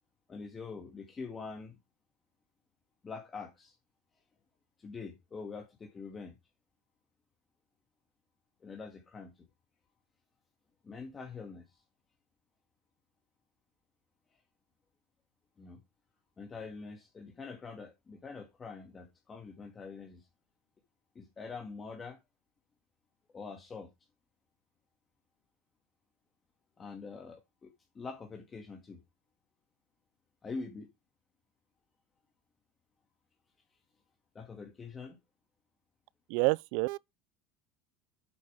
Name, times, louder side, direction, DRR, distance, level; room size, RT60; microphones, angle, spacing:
voice 1, 0.3-1.7 3.0-3.8 4.8-6.4 8.6-9.5 10.8-11.8 14.3-14.4 15.6-15.8 16.4-20.3 21.1-22.2 23.3-23.9 26.8-29.0 30.4-30.9 34.3-35.2, left 4 dB, 25° left, 2.2 m, -44 dB
voice 2, 36.3-37.0, right 26 dB, 75° right, 0.4 m, -28 dB
8.4 x 6.7 x 3.6 m
supercardioid pair, 110°, 0 cm